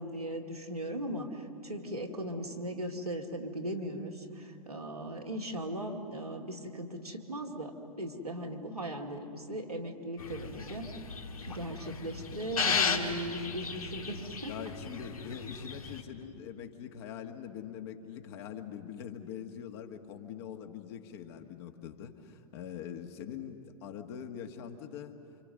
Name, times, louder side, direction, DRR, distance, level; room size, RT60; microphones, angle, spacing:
voice 1, 0.0-10.9 11.5-14.7 16.2-16.3, right 1 dB, 85° right, -1 dB, 2.3 m, -38 dB
sound 1, 10.2-16.0, left 5 dB, 70° left, 1.9 m, -35 dB
voice 2, 14.5-25.2, left 8 dB, 45° left, 4 dB, 1.8 m, -43 dB
28.5 x 26.0 x 6.7 m, 2.7 s
figure-of-eight pair, 95°, 19 cm